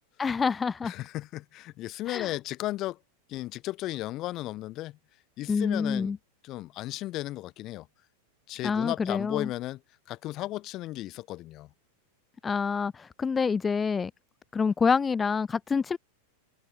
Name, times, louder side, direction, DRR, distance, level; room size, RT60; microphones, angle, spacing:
voice 1, 0.2-0.9 2.1-2.3 5.5-6.2 8.6-9.5 12.4-14.1 14.5-16.0, left 5 dB, 15° left, 0.5 m, -27 dB
voice 2, 0.8-3.0 3.3-5.0 5.4-6.2 6.4-7.9 8.5-9.8 10.1-11.7, left 16 dB, 35° left, 2.0 m, -35 dB
figure-of-eight pair, 90°, 0 cm